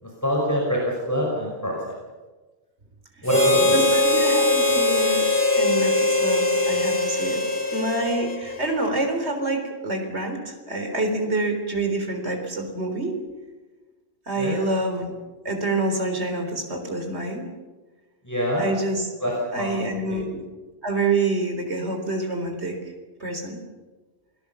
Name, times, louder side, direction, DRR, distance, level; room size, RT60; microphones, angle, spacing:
voice 1, 0.0-1.9 3.2-3.8 14.4-14.5 18.2-18.7 19.2-19.8 20.1-20.2, equal, 15° left, -3 dB, 5.4 m, -25 dB
Harmonica, 3.3-8.8, left 2 dB, 25° right, 4.5 m, -21 dB
voice 2, 3.7-7.4 7.7-13.1 14.3-15.1 15.4-17.4 18.6-19.1 19.5-20.4 20.8-22.8 23.2-23.6, right 2 dB, 85° right, 4 dB, 4.2 m, -27 dB
27.5 x 18.5 x 7.0 m, 1.3 s
omnidirectional pair, 1.1 m